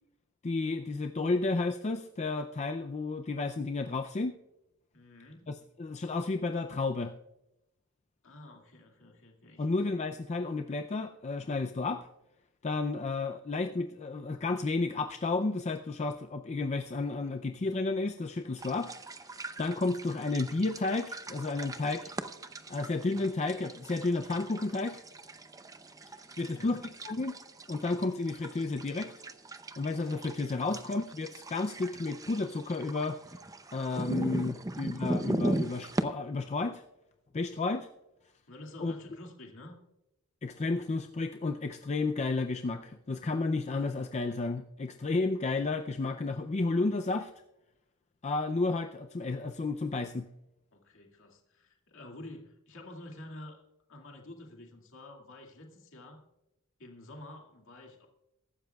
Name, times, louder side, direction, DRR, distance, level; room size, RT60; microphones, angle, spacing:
voice 1, 0.4-4.3 5.5-7.1 9.6-12.1 12.6-18.9 19.6-22.1 22.7-25.0 26.4-27.4 27.7-29.1 29.8-33.2 33.7-36.8 37.3-37.9 38.8-38.9 40.4-47.3 48.2-50.3, left 3 dB, 30° left, 6 dB, 0.4 m, -32 dB
voice 2, 4.9-5.5 8.2-9.7 26.4-26.8 34.5-34.6 38.5-39.8 50.7-53.6 53.9-56.2 56.8-58.1, left 1 dB, 60° left, 1 dB, 2.2 m, -49 dB
sound 1, 18.6-36.0, right 1 dB, 15° right, 0.6 m, -39 dB
22.5 x 12.5 x 2.3 m, 0.91 s
head